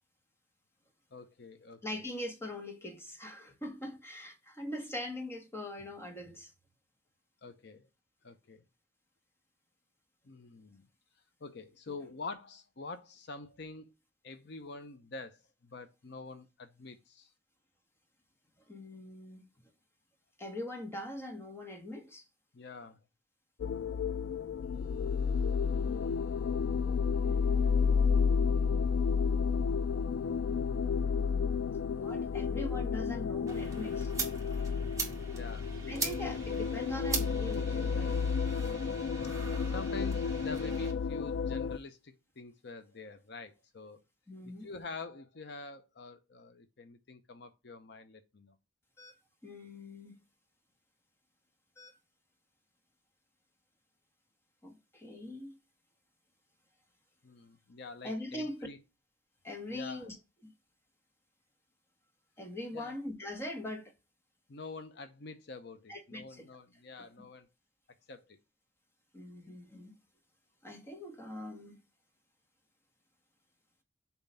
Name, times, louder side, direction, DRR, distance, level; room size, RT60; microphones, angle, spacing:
voice 1, 1.1-2.0 7.4-7.9 8.2-8.6 10.2-10.9 11.4-13.9 14.2-17.3 22.5-23.0 35.3-35.7 39.7-44.0 44.6-48.5 57.2-58.8 59.7-60.1 62.7-62.9 64.5-67.5 68.1-68.4, left 3 dB, 65° left, 0.7 m, -46 dB
voice 2, 1.8-6.5 11.9-12.0 18.7-19.4 20.4-22.2 27.2-27.9 31.9-34.1 35.9-38.2 44.3-44.7 49.0-49.2 49.4-50.2 51.8-52.0 54.6-55.6 58.0-58.7 59.4-60.2 60.4-60.5 62.4-63.9 65.9-66.5 67.0-67.1 69.1-69.9 70.6-71.8, left 1 dB, 15° left, 1.4 m, -42 dB
sound 1, 23.6-41.8, left 5 dB, 80° left, 0.3 m, -31 dB
sound 2, 33.5-40.9, right 4 dB, 20° right, 1.9 m, -41 dB
7.1 x 2.9 x 5.5 m
head